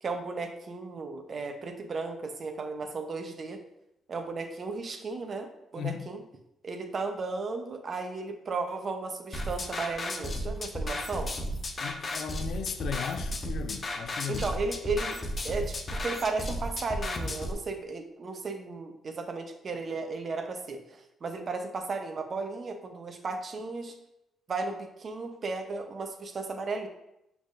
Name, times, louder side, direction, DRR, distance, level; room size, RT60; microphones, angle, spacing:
voice 1, 0.0-3.6 4.1-6.2 6.6-11.3 14.3-23.9 24.5-26.9, right 3 dB, 50° right, 0.7 m, -35 dB
voice 2, 5.8-6.1 11.8-14.5, left 8 dB, 70° left, 0.4 m, -36 dB
sound 1, 9.3-17.5, left 1 dB, 40° left, 0.7 m, -34 dB
6.1 x 3.5 x 2.5 m
supercardioid pair, 55°, 0 cm